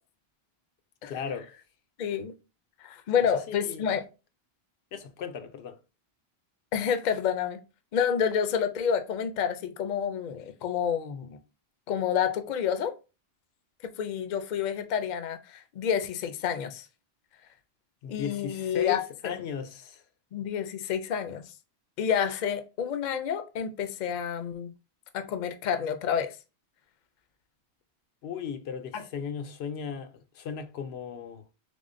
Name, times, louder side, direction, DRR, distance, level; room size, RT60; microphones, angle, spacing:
voice 1, 1.1-1.5 3.5-3.9 4.9-5.8 18.0-20.0 28.2-31.4, left 7 dB, 85° left, 0.8 m, -36 dB
voice 2, 2.0-2.3 2.8-4.0 6.7-7.6 7.9-11.4 11.9-12.9 13.8-16.9 18.1-19.4 20.3-21.4 22.0-24.7 25.1-26.4 28.9-29.0, left 8 dB, 55° left, 0.6 m, -29 dB
3.6 x 3.5 x 2.5 m
omnidirectional pair, 1.0 m